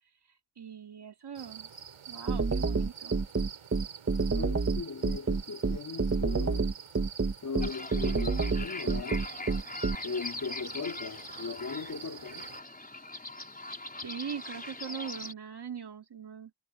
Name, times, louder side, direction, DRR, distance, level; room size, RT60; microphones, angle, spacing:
voice 1, 0.6-1.7 2.1-3.2 14.0-16.5, right 7 dB, 50° right, 2.3 m, -41 dB
sound 1, 1.3-12.6, right 8 dB, 80° right, 7.6 m, -47 dB
sound 2, 2.3-10.0, right 4 dB, 30° right, 1.5 m, -28 dB
voice 2, 4.3-6.7 7.4-9.2 10.0-12.5, left 5 dB, 40° left, 2.5 m, -38 dB
sound 3, 7.6-15.3, left 2 dB, 15° left, 4.6 m, -42 dB
wide cardioid pair, 165°, 50 cm